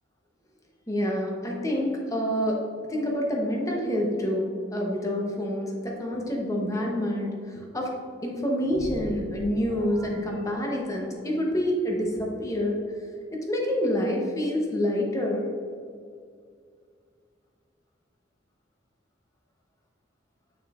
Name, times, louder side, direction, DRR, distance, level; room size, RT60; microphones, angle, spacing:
voice 1, 0.9-2.6 2.9-7.3 7.7-7.9 8.2-12.8 13.3-15.5, equal, 20° left, -1 dB, 0.8 m, -27 dB
sound 1, 8.6-11.2, equal, 15° right, 1.1 m, -41 dB
7.2 x 6.1 x 2.4 m, 2.2 s
head